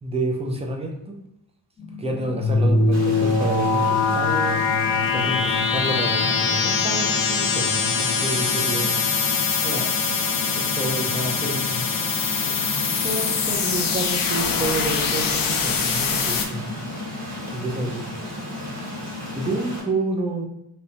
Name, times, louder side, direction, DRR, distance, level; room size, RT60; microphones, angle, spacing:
voice 1, 0.0-1.2 2.0-4.6 5.1-9.0 9.6-9.9 10.5-11.9 12.4-16.7 17.5-18.1 19.3-20.5, right 2 dB, 15° right, 0 dB, 0.4 m, -29 dB
sound 1, 1.8-19.8, left 4 dB, 10° left, 1.0 m, -37 dB
sound 2, 2.4-16.5, left 5 dB, 45° left, 0.5 m, -23 dB
Stream, 2.9-19.8, right 1 dB, 35° right, 1.5 m, -36 dB
3.1 x 2.7 x 2.8 m, 0.79 s
wide cardioid pair, 135°, 48 cm